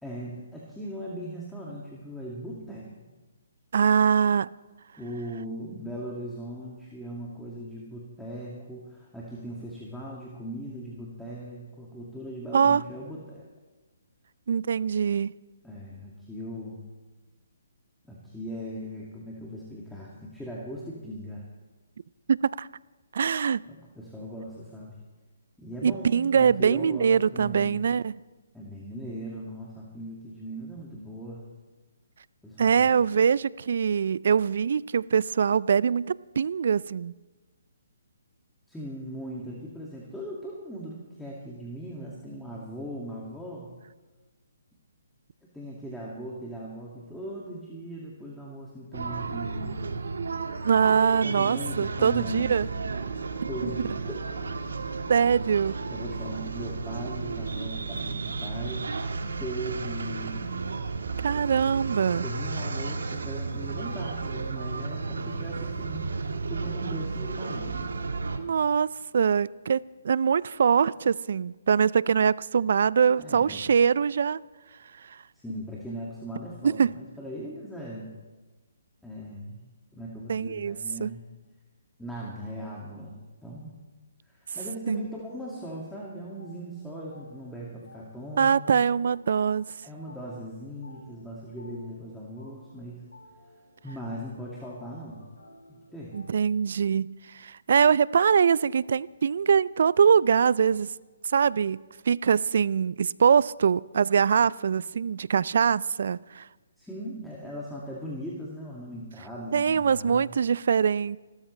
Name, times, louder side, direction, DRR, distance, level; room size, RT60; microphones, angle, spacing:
voice 1, 0.0-2.9 5.0-13.4 15.6-16.8 18.0-21.4 23.6-25.0 25.6-27.8 28.5-31.4 32.4-32.9 38.7-43.7 45.4-49.9 51.2-52.9 53.5-54.3 55.9-58.9 59.4-60.5 62.2-66.0 66.5-67.9 73.1-73.6 75.4-78.1 79.0-79.6 79.9-81.2 82.0-83.8 84.2-88.8 89.8-93.1 93.8-95.2 95.7-96.1 106.8-110.3, equal, 5° left, -5 dB, 2.1 m, -39 dB
voice 2, 3.7-4.5 12.5-12.8 14.5-15.3 22.3-22.7 23.1-23.6 25.8-28.1 32.6-37.1 50.6-52.7 55.1-55.8 61.2-62.2 68.4-74.4 76.8-76.9 80.3-81.1 84.9-85.0 88.4-89.6 96.1-100.9 101.2-106.4 109.5-111.2, right 7 dB, 60° right, 21 dB, 0.4 m, -23 dB
sound 1, 48.9-68.4, right 4 dB, 75° right, 1.6 m, -33 dB
sound 2, 85.3-96.4, left 1 dB, 90° left, 5.6 m, -53 dB
27.0 x 13.0 x 3.3 m, 1.2 s
hypercardioid pair, 145°, 0 cm